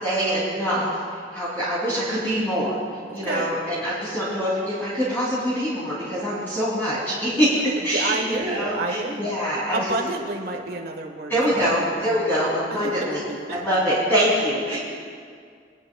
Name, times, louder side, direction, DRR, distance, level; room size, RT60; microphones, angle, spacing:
voice 1, 0.0-1.0 1.3-2.8 3.1-7.5 7.8-9.9 11.3-13.2 13.5-14.8, equal, 15° left, -10 dB, 2.8 m, -24 dB
voice 2, 3.1-3.5 7.9-9.3 9.7-11.7 13.0-13.2 13.5-13.6 14.7-14.8, right 2 dB, 60° right, 2 dB, 1.4 m, -29 dB
22.0 x 12.0 x 2.3 m, 2.1 s
head